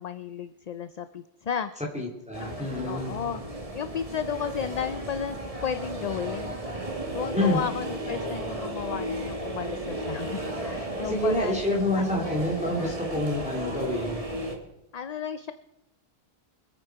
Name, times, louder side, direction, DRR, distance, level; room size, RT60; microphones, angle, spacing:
voice 1, 0.0-1.7 2.4-3.4 3.7-6.6 7.1-12.3 12.8-13.0 14.9-15.5, left 7 dB, 50° left, 11 dB, 0.5 m, -34 dB
voice 2, 1.9-3.1 7.3-7.6 11.0-14.2, left 1 dB, 5° right, -1 dB, 2.5 m, -27 dB
sound 1, 2.3-14.6, right 1 dB, 35° right, 1.9 m, -34 dB
24.5 x 9.2 x 4.6 m, 0.92 s
omnidirectional pair, 1.1 m